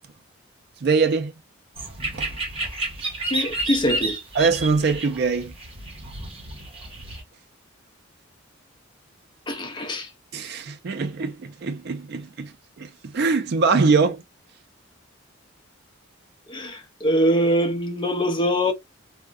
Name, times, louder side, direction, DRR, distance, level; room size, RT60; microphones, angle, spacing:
voice 1, 0.8-1.3 2.1-2.3 4.4-5.5 10.3-14.2, right 4 dB, 50° right, 0.4 m, -23 dB
sound 1, 1.8-7.2, right 2 dB, 25° right, 1.1 m, -31 dB
voice 2, 3.3-4.2 9.5-10.1 16.5-18.7, equal, 20° left, 0.5 m, -23 dB
3.5 x 2.1 x 2.2 m
head